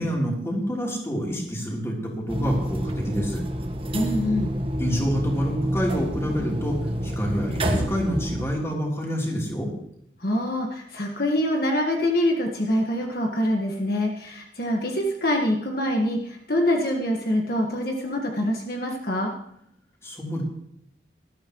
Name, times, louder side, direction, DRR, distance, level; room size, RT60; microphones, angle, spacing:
voice 1, 0.0-3.4 4.8-6.8 7.0-9.7 20.0-20.4, equal, 15° left, -2 dB, 3.5 m, -27 dB
sound 1, 2.3-8.4, equal, 30° right, 1.4 m, -28 dB
voice 2, 3.9-4.5 10.2-19.3, left 1 dB, 55° left, 1 dB, 1.6 m, -25 dB
19.5 x 13.0 x 3.1 m, 0.73 s
head